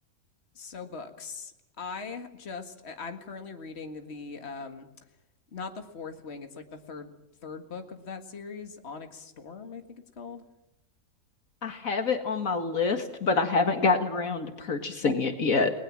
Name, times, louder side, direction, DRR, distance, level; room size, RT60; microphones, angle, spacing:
voice 1, 0.6-1.5 1.8-4.9 5.5-10.4, left 5 dB, 45° left, 6 dB, 2.1 m, -41 dB
voice 2, 11.6-15.8, left 4 dB, 65° left, 7 dB, 2.1 m, -26 dB
30.0 x 20.0 x 7.5 m, 0.86 s
omnidirectional pair, 1.6 m